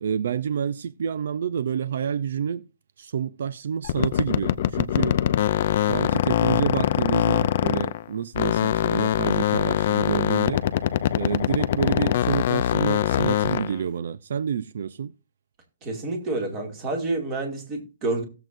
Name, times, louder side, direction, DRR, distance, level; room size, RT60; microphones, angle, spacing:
voice 1, 0.0-2.7 3.0-5.2 5.8-10.7 11.1-15.1, right 8 dB, 65° right, 0.4 m, -28 dB
sound 1, 3.8-8.1 8.3-13.8, left 11 dB, 45° left, 0.5 m, -23 dB
voice 2, 15.8-18.2, right 2 dB, 20° right, 2.3 m, -28 dB
17.0 x 7.5 x 2.6 m
hypercardioid pair, 170°, 0 cm